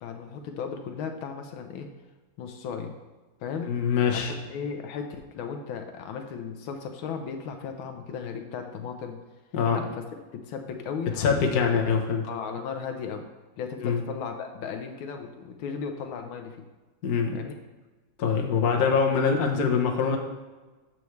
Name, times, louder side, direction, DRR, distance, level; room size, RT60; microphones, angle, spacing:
voice 1, 0.0-1.9 2.4-2.9 3.4-3.7 4.1-9.2 9.7-10.0 10.3-13.2 13.6-16.6 17.3-17.5 18.5-18.7, left 6 dB, 85° left, 5 dB, 1.5 m, -36 dB
voice 2, 3.7-4.3 9.5-9.9 11.2-12.3 13.8-14.0 17.0-17.4 18.2-20.2, left 6 dB, 55° left, 2 dB, 1.3 m, -24 dB
13.5 x 4.6 x 3.2 m, 1.2 s
omnidirectional pair, 2.2 m